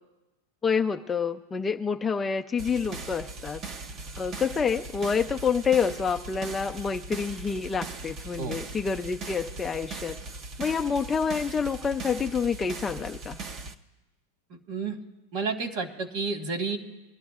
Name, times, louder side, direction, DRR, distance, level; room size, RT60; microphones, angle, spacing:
voice 1, 0.6-3.6 4.2-10.2 10.6-13.4, left 6 dB, 15° left, 4 dB, 0.4 m, -28 dB
sound 1, 2.6-13.7, right 3 dB, 35° right, 0.7 m, -39 dB
voice 2, 14.5-15.0 15.3-16.8, right 4 dB, 50° right, 5 dB, 1.6 m, -31 dB
23.0 x 12.0 x 2.4 m, 1.1 s
supercardioid pair, 140°, 0 cm